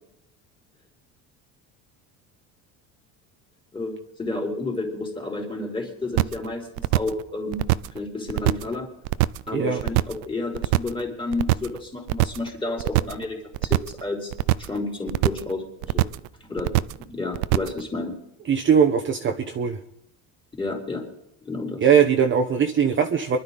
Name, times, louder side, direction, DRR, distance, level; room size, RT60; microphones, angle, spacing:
voice 1, 3.7-7.6 7.9-8.9 9.5-14.3 14.6-16.1 16.4-16.8 17.1-18.2 20.6-21.0 21.4-21.8, left 2 dB, 15° left, 0 dB, 3.6 m, -31 dB
sound 1, 6.2-6.5 6.8-7.2 7.5-8.0 8.3-8.7 9.0-9.5 9.8-10.2 10.5-11.0 11.3-11.8 12.1-12.5 12.8-13.2 13.5-14.0 14.3-14.8 15.1-15.5 15.8-16.3 16.6-17.0 17.3-17.8, right 18 dB, 90° right, 0.6 m, -22 dB
voice 2, 18.4-19.8 21.8-23.4, right 7 dB, 30° right, 5 dB, 1.1 m, -20 dB
24.0 x 12.0 x 4.0 m, 0.81 s
cardioid pair, 115°, 36 cm